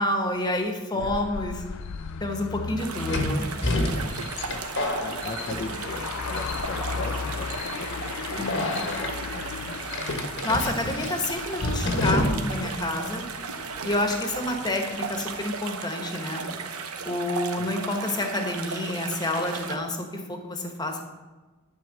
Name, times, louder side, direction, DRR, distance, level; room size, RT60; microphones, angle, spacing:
voice 1, 0.0-1.6 2.2-3.5 8.4-8.8 10.4-13.3 13.8-16.4 17.0-21.0, left 1 dB, 20° left, 4 dB, 1.3 m, -29 dB
voice 2, 0.9-1.3 4.0-4.6 5.0-9.8 12.9-13.3 17.6-17.7, left 2 dB, 40° left, 1 dB, 0.7 m, -39 dB
sound 1, 1.0-15.4, left 6 dB, 80° left, 0.4 m, -37 dB
sound 2, 1.7-1.8 3.1-6.1 6.4-6.9 7.5-7.7 8.5-9.1 9.9-12.7 12.9-13.0 14.2-14.5, left 1 dB, 60° left, 1.3 m, -29 dB
sound 3, 2.8-19.8, right 5 dB, 85° right, 0.9 m, -36 dB
11.0 x 4.6 x 7.6 m, 1.2 s
head